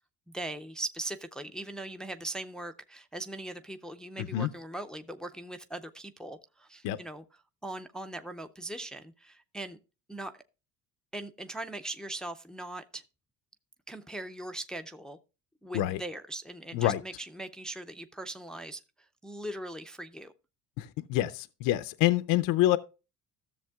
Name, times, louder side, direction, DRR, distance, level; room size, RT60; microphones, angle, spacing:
voice 1, 0.3-7.2 7.6-9.8 10.1-10.4 11.1-13.0 13.9-15.2 15.6-18.8 19.2-20.3, right 1 dB, ahead, 0.5 m, -40 dB
voice 2, 4.2-4.5 6.8-7.0 15.7-16.0 16.7-17.0 20.8-22.8, left 14 dB, 70° left, 0.6 m, -27 dB
13.5 x 7.0 x 2.3 m
cardioid pair, 105°, 34 cm